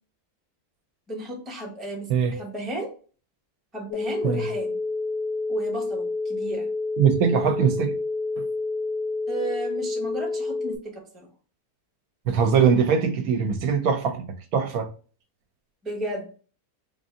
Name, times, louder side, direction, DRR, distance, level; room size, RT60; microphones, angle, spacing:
voice 1, 1.1-2.9 3.7-4.8 5.5-6.7 9.3-11.3 15.8-16.3, right 1 dB, ahead, 0.6 m, -34 dB
sound 1, 3.9-10.8, left 3 dB, 70° left, 1.0 m, -29 dB
voice 2, 7.0-7.9 8.4-8.5 12.3-14.3 14.5-14.9, right 7 dB, 70° right, 1.0 m, -22 dB
4.1 x 2.6 x 3.6 m
omnidirectional pair, 1.7 m